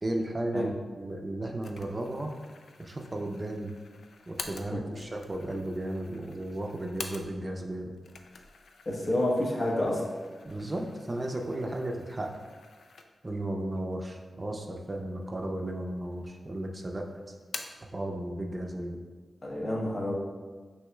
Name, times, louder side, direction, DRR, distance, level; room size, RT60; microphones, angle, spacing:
voice 1, 0.0-2.3 2.8-3.7 4.3-7.9 10.4-12.3 13.2-17.3 17.9-19.0, right 1 dB, 35° right, 2 dB, 0.5 m, -34 dB
sound 1, 1.6-7.6 7.9-13.4 13.8-13.9 14.8-15.4 15.7-16.5 16.8-17.9, left 4 dB, 80° left, 0.3 m, -47 dB
voice 2, 8.9-10.1 19.4-20.1, left 1 dB, 50° left, -4 dB, 1.0 m, -29 dB
5.9 x 2.9 x 2.3 m, 1.4 s
cardioid pair, 50°, 0 cm